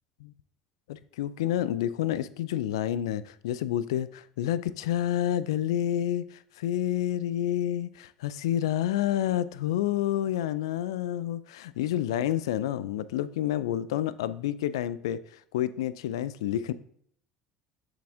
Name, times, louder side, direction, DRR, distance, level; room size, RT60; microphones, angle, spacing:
voice 1, 0.9-16.7, left 11 dB, 80° left, 16 dB, 0.3 m, -29 dB
7.0 x 5.1 x 3.5 m, 0.63 s
hypercardioid pair, 70°, 3 cm